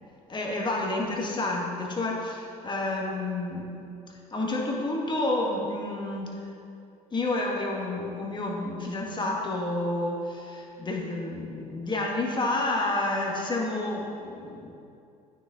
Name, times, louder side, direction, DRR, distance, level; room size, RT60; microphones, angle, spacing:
voice 1, 0.3-3.8 4.3-6.3 7.1-14.7, left 2 dB, 25° left, -1 dB, 1.4 m, -29 dB
9.2 x 6.3 x 2.4 m, 2.5 s
hypercardioid pair, 70°, 18 cm